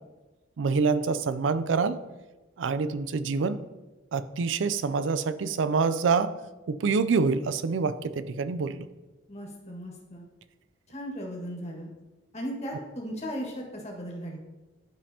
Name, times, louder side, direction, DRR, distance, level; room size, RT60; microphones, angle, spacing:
voice 1, 0.6-2.0 2.6-3.6 4.1-6.3 6.7-8.9, right 4 dB, 85° right, 14 dB, 0.4 m, -26 dB
voice 2, 9.3-10.2 10.9-11.9 12.3-14.4, equal, 35° left, -1 dB, 1.6 m, -37 dB
11.0 x 5.3 x 2.8 m, 1.2 s
head